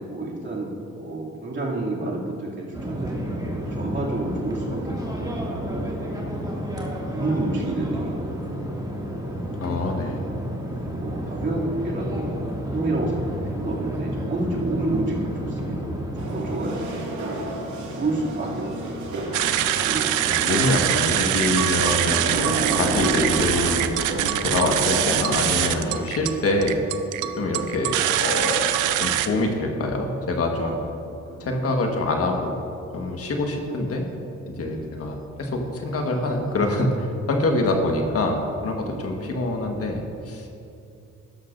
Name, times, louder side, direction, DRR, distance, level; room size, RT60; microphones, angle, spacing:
voice 1, 0.0-6.0 6.9-8.5 9.8-10.0 10.8-16.8 17.8-19.1 19.8-20.1 27.2-27.5 30.6-30.7 31.2-31.6 34.6-34.9 38.8-39.2, right 2 dB, 40° right, -4 dB, 2.6 m, -30 dB
sound 1, 2.7-16.4, equal, 15° right, 2.2 m, -31 dB
voice 2, 9.6-10.2 20.3-24.0 24.4-26.8 27.4-28.7 29.0-30.7 31.4-32.5 32.9-34.0 34.5-40.5, left 2 dB, 50° left, 2 dB, 1.4 m, -25 dB
sound 2, 16.2-26.0, right 1 dB, 70° right, 2.2 m, -31 dB
sound 3, 19.3-29.3, right 12 dB, 90° right, 0.6 m, -23 dB
12.5 x 12.0 x 2.6 m, 2.6 s
cardioid pair, 90°, 30 cm